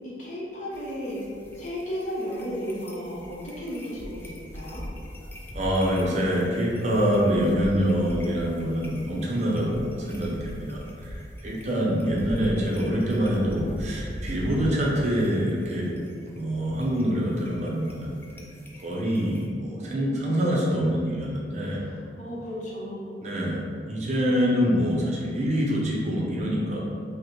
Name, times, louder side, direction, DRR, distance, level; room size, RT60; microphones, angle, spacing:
voice 1, 0.2-1.3 1.5-4.8 11.6-12.0 12.4-12.7 14.6-14.8 20.1-20.6 21.8-21.9 22.2-23.2, equal, 45° left, -6 dB, 0.9 m, -34 dB
sound 1, 0.7-19.5, equal, 10° left, 0.3 m, -41 dB
voice 2, 5.5-15.9 16.3-18.1 18.8-21.8 23.2-23.6 23.9-26.8, equal, 40° right, -4 dB, 0.6 m, -25 dB
5.3 x 2.1 x 3.0 m, 2.4 s
head